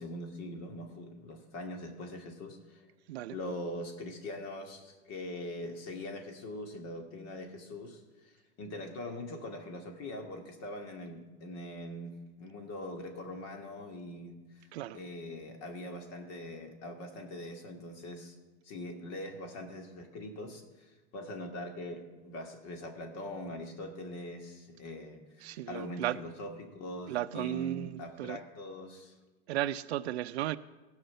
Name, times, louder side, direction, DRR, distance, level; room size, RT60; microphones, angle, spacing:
voice 1, 0.0-2.9 3.3-8.3 8.6-14.7 14.9-18.4 18.6-29.1, left 1 dB, 50° left, 2.2 m, -42 dB
voice 2, 25.4-26.2 27.1-28.4 29.5-30.6, right 14 dB, 85° right, 0.5 m, -34 dB
15.5 x 5.8 x 7.9 m
hypercardioid pair, 95°, 32 cm